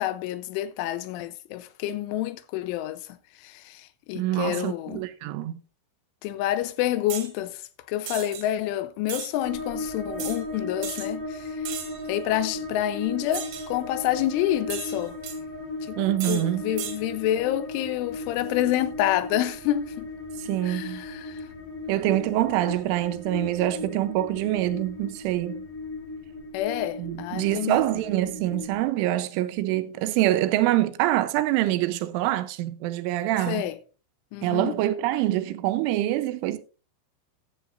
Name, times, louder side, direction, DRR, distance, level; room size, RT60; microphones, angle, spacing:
voice 1, 0.0-3.0 3.4-5.1 6.2-7.6 7.9-11.5 12.1-15.2 15.9-16.0 16.3-20.1 20.6-21.4 26.5-27.9 33.5-33.8 34.3-34.8, left 13 dB, 85° left, 3.2 m, -28 dB
voice 2, 4.1-5.6 16.0-16.7 20.4-21.0 21.9-25.6 27.0-33.7 34.4-36.6, right 15 dB, 85° right, 3.2 m, -25 dB
sound 1, 7.1-7.3 8.1-8.4 9.1-9.3 10.2-10.4 10.8-11.1 11.7-12.0 13.3-13.7 14.7-15.4 16.2-16.4 16.8-17.0, right 10 dB, 70° right, 3.9 m, -35 dB
sound 2, 9.4-28.8, left 2 dB, 20° left, 2.4 m, -37 dB
14.5 x 11.0 x 2.5 m
omnidirectional pair, 5.6 m